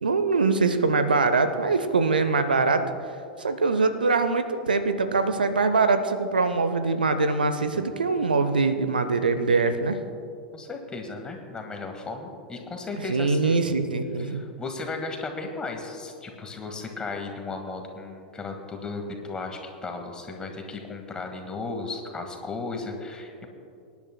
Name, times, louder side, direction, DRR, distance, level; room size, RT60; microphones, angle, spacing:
voice 1, 0.0-2.8 3.4-10.0 13.1-14.4, right 4 dB, 75° right, 10 dB, 0.7 m, -23 dB
voice 2, 10.5-13.6 14.2-23.5, left 3 dB, 15° left, 3 dB, 1.7 m, -35 dB
24.0 x 10.5 x 2.2 m, 2.5 s
figure-of-eight pair, 90°, 5 cm